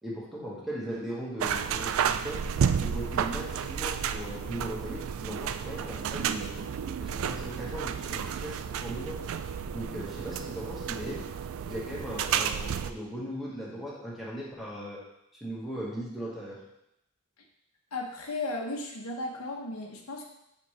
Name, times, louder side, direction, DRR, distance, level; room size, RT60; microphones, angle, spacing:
voice 1, 0.0-2.4 2.8-6.6 7.0-9.2 9.7-11.3 11.6-15.0 15.4-16.6, equal, ahead, -7 dB, 1.6 m, -38 dB
sound 1, 1.4-12.9, right 7 dB, 65° right, 0.3 m, -31 dB
voice 2, 17.9-20.2, left 2 dB, 85° left, 0 dB, 1.1 m, -35 dB
8.3 x 4.3 x 3.3 m, 0.80 s
head